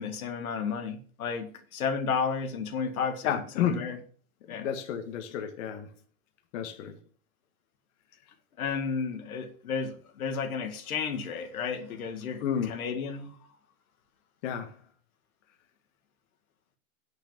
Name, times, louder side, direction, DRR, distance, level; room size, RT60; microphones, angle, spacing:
voice 1, 0.0-4.0 4.5-4.7 8.6-13.3, left 5 dB, 90° left, 2.0 m, -32 dB
voice 2, 3.2-4.0 4.6-5.9 6.5-7.0 12.4-12.9 14.4-14.8, left 8 dB, 60° left, 1.7 m, -31 dB
8.4 x 6.6 x 7.2 m
supercardioid pair, 140°, 42 cm